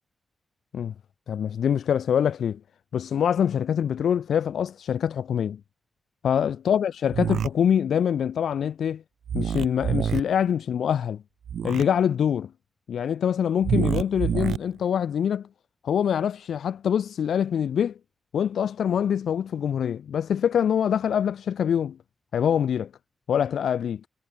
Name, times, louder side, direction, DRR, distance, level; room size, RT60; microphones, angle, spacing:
voice 1, 1.3-2.6 2.9-5.6 6.2-9.0 9.3-11.2 11.6-12.5 12.9-15.5 15.8-17.9 18.3-22.0 22.3-22.9 23.3-24.0, left 8 dB, 80° left, 0.3 m, -24 dB
sound 1, 7.1-7.5 9.3-10.2 11.5-11.8 13.6-14.6, right 8 dB, 85° right, 0.4 m, -26 dB
wide cardioid pair, 165°, 0 cm